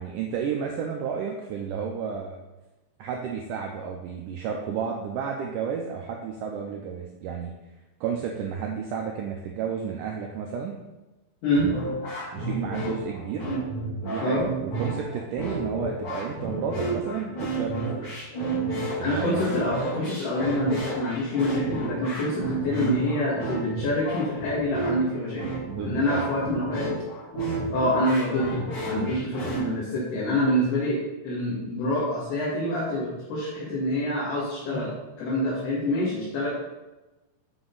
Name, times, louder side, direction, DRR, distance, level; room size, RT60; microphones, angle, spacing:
voice 1, 0.0-2.4 3.0-7.5 8.0-10.8 12.3-13.5 14.0-18.2 19.0-19.4 25.7-26.3 28.9-29.1, right 7 dB, 90° right, 1 dB, 1.8 m, -32 dB
sound 1, 11.5-29.6, right 2 dB, 40° left, 3.0 m, -31 dB
voice 2, 19.0-25.5 25.8-26.9 27.7-36.5, left 1 dB, 80° left, -9 dB, 3.8 m, -26 dB
7.8 x 6.2 x 3.9 m, 1.1 s
omnidirectional pair, 4.5 m